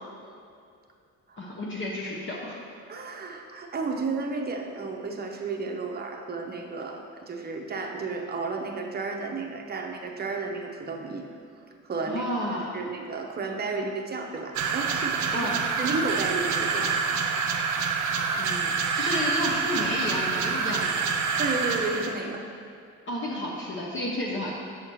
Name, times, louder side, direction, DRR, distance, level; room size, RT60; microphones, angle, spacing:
voice 1, 1.4-2.6 12.1-12.8 15.3-15.6 18.3-21.1 23.1-24.5, left 1 dB, 40° left, -3 dB, 0.8 m, -31 dB
voice 2, 2.9-11.3 11.8-12.2 12.7-15.5 15.8-17.0 21.4-22.4, right 3 dB, 30° right, 2 dB, 0.7 m, -32 dB
sound 1, 14.5-22.2, right 5 dB, 75° right, 0.6 m, -27 dB
6.4 x 5.7 x 3.1 m, 2.4 s
cardioid pair, 90°, 30 cm